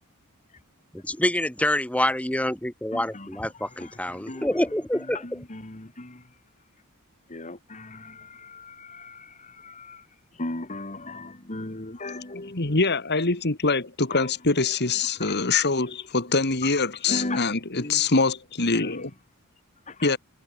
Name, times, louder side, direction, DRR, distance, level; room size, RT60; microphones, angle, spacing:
voice 1, 0.9-5.4, left 1 dB, 5° left, 2.2 m, -27 dB
voice 2, 2.9-3.3 3.8-4.5 5.2-6.2 7.3-10.0 10.4-12.7 14.1-14.3 15.2-15.3 15.8-16.0 17.1-17.4 17.7-18.0 18.7-18.9 19.9-20.2, left 2 dB, 35° left, 2.1 m, -37 dB
voice 3, 12.3-19.1 20.0-20.2, left 3 dB, 50° left, 2.2 m, -24 dB
head